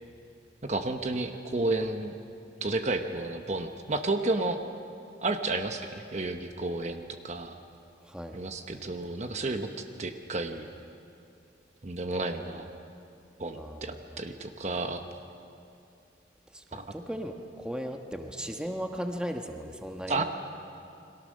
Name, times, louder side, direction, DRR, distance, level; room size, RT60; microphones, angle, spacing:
voice 1, 0.6-2.1 2.6-4.6 5.2-7.6 8.3-10.7 11.8-12.7 13.4-15.0 16.7-16.8 20.1-20.2, right 2 dB, 40° right, 6 dB, 1.0 m, -31 dB
voice 2, 8.0-8.4 13.5-14.2 16.5-20.2, equal, 5° right, 3 dB, 1.3 m, -37 dB
29.5 x 23.0 x 6.6 m, 2.5 s
head